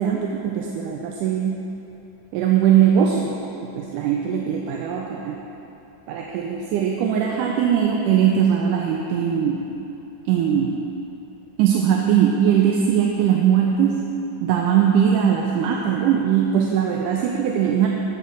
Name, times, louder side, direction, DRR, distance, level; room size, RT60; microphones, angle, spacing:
voice 1, 0.0-1.6 2.3-3.4 3.8-5.4 6.1-9.7 10.3-10.8 11.6-14.1 14.4-17.9, right 8 dB, 85° right, 0 dB, 2.2 m, -20 dB
13.5 x 4.8 x 6.1 m, 3.0 s
omnidirectional pair, 3.7 m